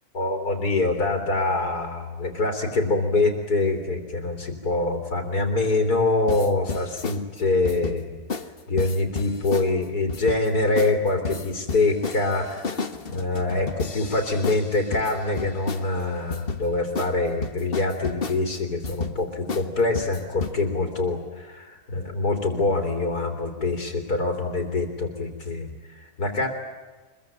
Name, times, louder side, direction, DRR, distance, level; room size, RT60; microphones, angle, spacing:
voice 1, 0.1-8.2 8.7-26.5, left 2 dB, 75° left, 5 dB, 3.6 m, -25 dB
sound 1, 6.3-7.2 7.7-8.0 8.3-8.5 8.8-9.7 10.1-10.5 10.8-11.0 11.3-15.9 16.3-16.6 17.0-17.1 17.4-18.4 18.8-19.2 19.5-19.7 20.0-20.5, left 4 dB, 40° left, 1.6 m, -31 dB
25.0 x 22.5 x 9.0 m, 1.3 s
omnidirectional pair, 1.7 m